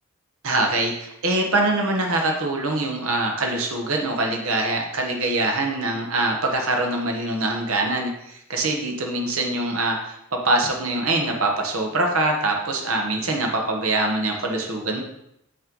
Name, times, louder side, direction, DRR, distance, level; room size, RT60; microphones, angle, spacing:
voice 1, 0.4-15.0, right 2 dB, 80° right, 2 dB, 1.1 m, -24 dB
5.9 x 3.2 x 5.3 m, 0.80 s
head